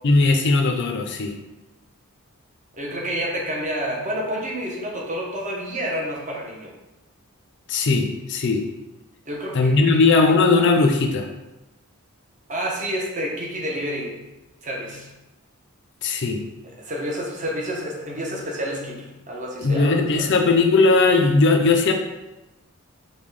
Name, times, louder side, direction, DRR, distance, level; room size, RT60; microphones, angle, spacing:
voice 1, 0.0-1.3 7.7-8.7 9.5-11.3 16.0-16.4 19.6-21.9, left 3 dB, 55° left, 4 dB, 0.5 m, -18 dB
voice 2, 2.8-6.7 9.3-10.0 12.5-14.2 14.6-15.1 16.8-19.9, equal, 35° right, -2 dB, 0.8 m, -29 dB
5.3 x 2.2 x 3.2 m, 1.0 s
head